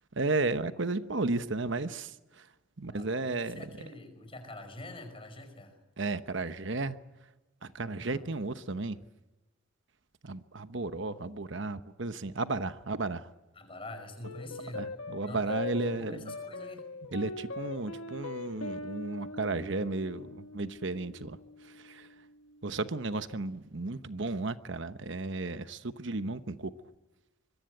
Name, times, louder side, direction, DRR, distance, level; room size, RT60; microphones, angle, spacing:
voice 1, 0.1-2.5 2.8-3.9 6.0-7.0 7.6-9.0 10.2-13.3 14.7-16.3 17.1-22.1 22.6-26.7, right 3 dB, 60° right, 11 dB, 1.0 m, -34 dB
voice 2, 2.9-5.8 8.0-8.3 13.6-14.8 15.2-16.8, left 1 dB, 25° left, 7 dB, 5.3 m, -46 dB
sound 1, 14.2-22.9, left 3 dB, 85° left, 1.5 m, -42 dB
25.0 x 23.0 x 7.9 m, 1.0 s
head